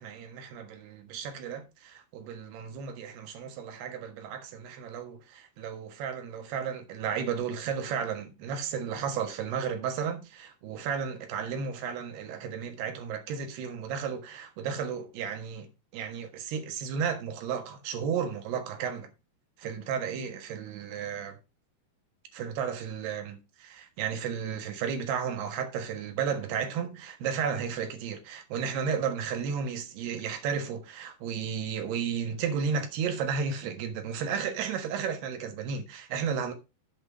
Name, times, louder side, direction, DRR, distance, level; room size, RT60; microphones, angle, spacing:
voice 1, 0.0-19.1 19.6-21.4 22.3-36.5, right 7 dB, 85° right, 3.5 m, -33 dB
8.0 x 5.7 x 5.4 m
omnidirectional pair, 4.5 m